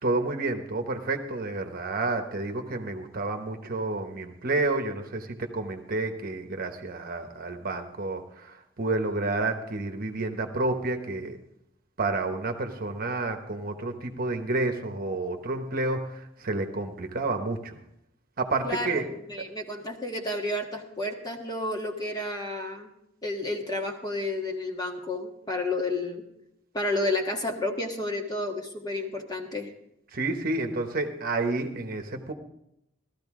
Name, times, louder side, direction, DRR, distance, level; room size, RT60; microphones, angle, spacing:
voice 1, 0.0-11.4 12.0-17.7 18.4-19.1 30.1-32.3, right 2 dB, 50° right, 5 dB, 1.0 m, -30 dB
voice 2, 18.6-22.9 23.2-26.2 26.7-29.7, left 2 dB, 20° left, 2 dB, 1.4 m, -31 dB
16.0 x 13.0 x 3.7 m, 0.79 s
head